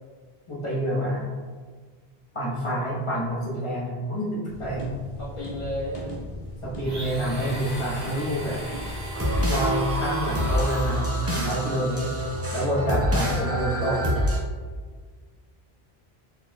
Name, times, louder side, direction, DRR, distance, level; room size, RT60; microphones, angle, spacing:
voice 1, 0.5-1.3 2.3-5.0 6.6-8.6 9.5-12.1 12.5-14.0, equal, 30° left, -6 dB, 1.2 m, -28 dB
sound 1, 4.5-9.6, equal, 70° left, 1.0 m, -38 dB
voice 2, 5.2-6.2 13.1-13.5 13.8-14.0, left 1 dB, 50° left, -14 dB, 1.8 m, -33 dB
Domestic sounds home sounds, 6.8-11.3, equal, 70° right, 1.8 m, -38 dB
Glass Labyrinth Loop, 9.1-14.4, equal, 20° right, 0.5 m, -26 dB
4.4 x 4.2 x 2.3 m, 1.5 s
omnidirectional pair, 1.0 m